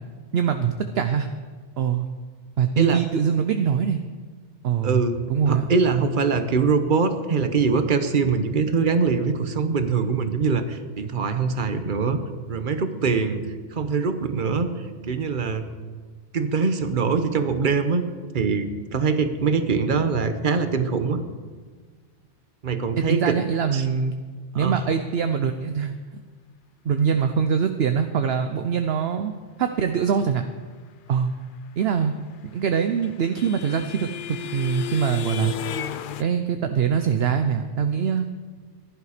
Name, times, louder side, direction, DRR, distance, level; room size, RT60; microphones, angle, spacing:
voice 1, 0.3-1.3 1.8-2.1 2.6-4.0 4.6-5.7 23.0-24.1 24.5-26.2 26.8-29.3 29.6-30.4 31.1-31.3 31.8-32.1 32.5-35.5 36.2-38.3, right 7 dB, 60° right, 8 dB, 0.8 m, -23 dB
voice 2, 4.8-5.1 5.5-13.4 13.7-14.7 15.0-15.7 16.3-18.0 18.3-21.2 22.6-23.3 23.7-23.8 24.5-24.8, right 5 dB, 45° right, 9 dB, 1.1 m, -23 dB
sound 1, 32.4-36.2, left 8 dB, 60° left, 0.6 m, -33 dB
16.0 x 11.5 x 5.0 m, 1.5 s
omnidirectional pair, 1.3 m